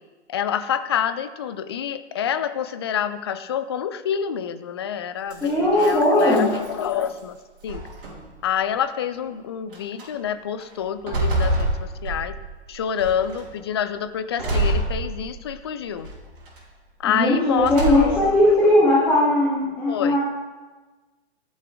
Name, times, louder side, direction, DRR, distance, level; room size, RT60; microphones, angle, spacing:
voice 1, 0.3-7.4 7.6-7.8 8.4-12.3 12.7-16.1 17.0-18.8 19.9-20.2, left 8 dB, 25° left, 12 dB, 0.3 m, -27 dB
sound 1, 5.3-7.2 7.7-8.4 9.2-9.3 9.7-10.1 10.6-12.5 13.0-13.5 14.4-15.5 16.0-16.6 17.5-18.4, right 1 dB, 55° right, 3.4 m, -27 dB
voice 2, 5.4-6.4 17.0-20.2, left 1 dB, 5° left, -11 dB, 2.9 m, -18 dB
13.5 x 6.2 x 4.9 m, 1.3 s
figure-of-eight pair, 115°, 34 cm